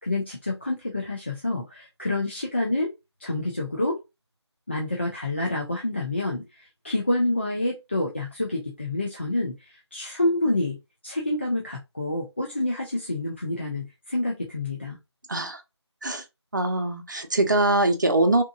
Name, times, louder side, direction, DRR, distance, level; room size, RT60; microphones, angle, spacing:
voice 1, 0.0-2.9 3.2-4.0 4.7-15.0, left 2 dB, 25° left, 0.5 m, -28 dB
voice 2, 16.5-18.4, right 2 dB, 40° right, 0.7 m, -22 dB
3.5 x 2.9 x 2.4 m
figure-of-eight pair, 160°, 15 cm